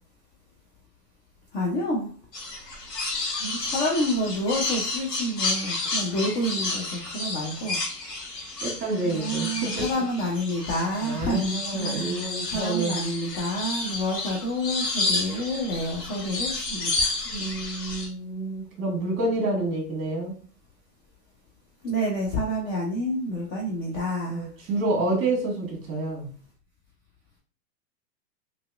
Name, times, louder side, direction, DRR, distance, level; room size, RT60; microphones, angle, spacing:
voice 1, 1.5-2.1 3.4-7.8 9.0-17.2 21.8-24.5, equal, 20° left, -3 dB, 0.4 m, -28 dB
sound 1, 2.3-18.1, left 3 dB, 80° left, 1.3 m, -31 dB
voice 2, 8.6-10.0 11.0-13.0 17.2-20.3 24.2-26.3, right 2 dB, 25° right, 0 dB, 1.4 m, -28 dB
2.9 x 2.8 x 2.3 m, 0.40 s
hypercardioid pair, 115°, 48 cm